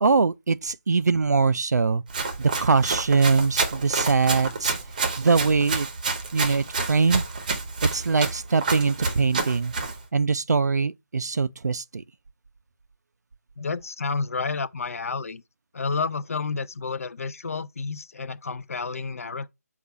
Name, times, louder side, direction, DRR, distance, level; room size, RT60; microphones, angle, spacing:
voice 1, 0.0-2.0 2.4-4.7 5.2-5.9 6.3-7.2 7.9-9.7 10.1-12.0, right 4 dB, 80° right, 0.4 m, -22 dB
Run, 2.1-10.0, right 3 dB, 30° right, 0.7 m, -29 dB
voice 2, 13.6-15.4 15.7-19.5, left 4 dB, 55° left, 0.4 m, -30 dB
4.6 x 2.3 x 4.0 m
figure-of-eight pair, 165°, 9 cm